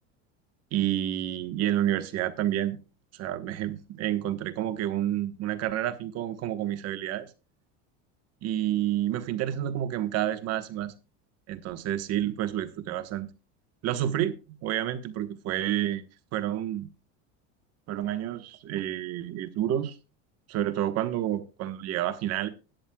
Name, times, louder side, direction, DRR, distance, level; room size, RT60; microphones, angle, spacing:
voice 1, 0.7-2.8 3.1-7.3 8.4-10.9 11.5-13.3 13.8-16.0 16.3-16.9 17.9-20.0 20.5-22.5, right 12 dB, 45° right, 1.2 m, -29 dB
16.5 x 10.5 x 2.3 m
cardioid pair, 145°, 34 cm